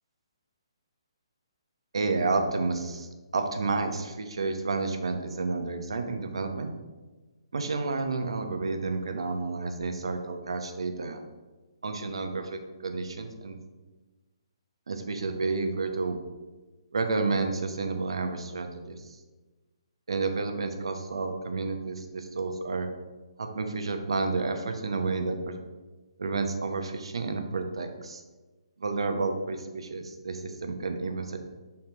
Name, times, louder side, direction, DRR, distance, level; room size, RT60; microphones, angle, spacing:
voice 1, 1.9-6.7 7.5-11.2 11.8-13.6 14.9-16.2 16.9-19.0 20.1-22.9 23.4-25.6 26.2-28.2 28.8-31.4, right 3 dB, 70° right, 6 dB, 0.9 m, -30 dB
5.9 x 4.3 x 4.4 m, 1.2 s
figure-of-eight pair, 135°, 3 cm